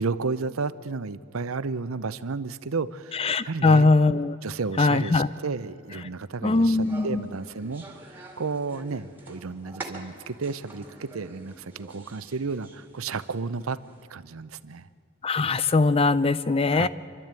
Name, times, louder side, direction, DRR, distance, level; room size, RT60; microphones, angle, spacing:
voice 1, 0.0-3.9 4.4-13.8 14.1-14.9 16.7-16.9, right 4 dB, 75° right, 15 dB, 0.7 m, -32 dB
voice 2, 3.2-4.4 4.8-5.3 6.4-7.2 15.2-16.9, left 3 dB, 25° left, 15 dB, 0.5 m, -21 dB
sound 1, 6.7-14.0, right 2 dB, 10° right, 2.0 m, -46 dB
28.0 x 12.0 x 9.0 m, 2.4 s
head